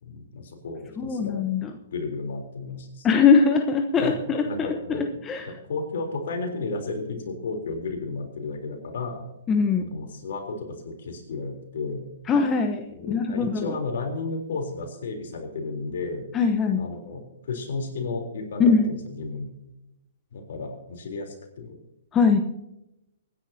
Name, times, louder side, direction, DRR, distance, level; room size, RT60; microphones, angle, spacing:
voice 1, 0.0-1.4 1.9-3.1 4.0-5.1 5.4-9.2 9.9-12.1 13.0-16.3 16.8-19.5 20.3-21.8, left 3 dB, 65° left, 3 dB, 3.6 m, -33 dB
voice 2, 1.0-1.7 3.0-5.4 9.5-9.8 12.3-13.7 16.3-16.8 18.6-18.8 22.1-22.4, left 5 dB, 20° left, 5 dB, 1.0 m, -21 dB
25.0 x 10.5 x 2.9 m, 0.87 s
hypercardioid pair, 125°, 0 cm